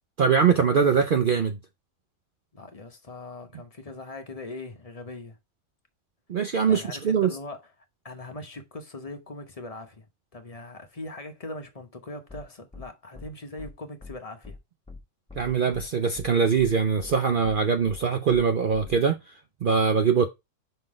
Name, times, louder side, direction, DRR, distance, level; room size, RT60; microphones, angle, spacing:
voice 1, 0.2-1.6 6.3-7.3 15.3-19.2 19.6-20.3, right 6 dB, 80° right, 0.4 m, -22 dB
voice 2, 2.5-5.4 6.7-7.6 8.0-10.1 10.3-14.6, left 2 dB, 30° left, 0.8 m, -40 dB
sound 1, 12.3-12.4 12.7-12.9 13.1-13.3 13.6-13.7 14.0-14.1 14.4-14.6 14.9-15.0 15.3-15.9 16.1-16.3 16.6-16.7 17.0-17.1 17.4-17.6 17.9-18.0 18.3-18.4 18.7-19.0, left 3 dB, 5° left, 1.1 m, -42 dB
5.5 x 3.8 x 4.8 m
omnidirectional pair, 1.6 m